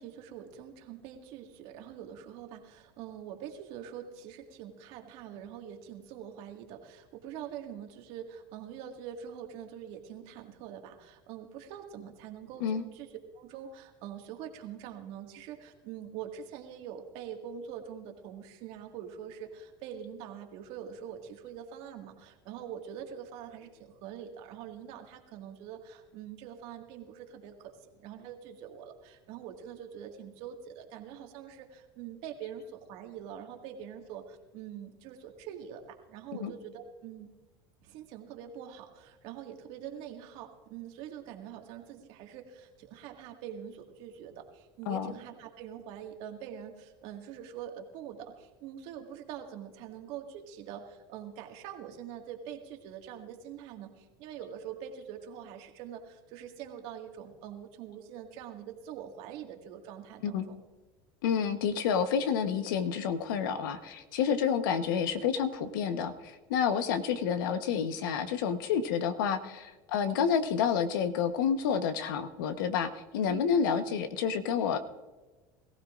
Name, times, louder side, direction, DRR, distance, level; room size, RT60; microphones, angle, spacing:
voice 1, 0.0-13.1 13.3-37.3 37.8-60.6 73.3-73.5, right 9 dB, 65° right, 3 dB, 1.9 m, -44 dB
voice 2, 61.2-74.8, left 7 dB, 85° left, 9 dB, 1.1 m, -29 dB
21.5 x 15.0 x 2.5 m, 1.2 s
supercardioid pair, 110°, 11 cm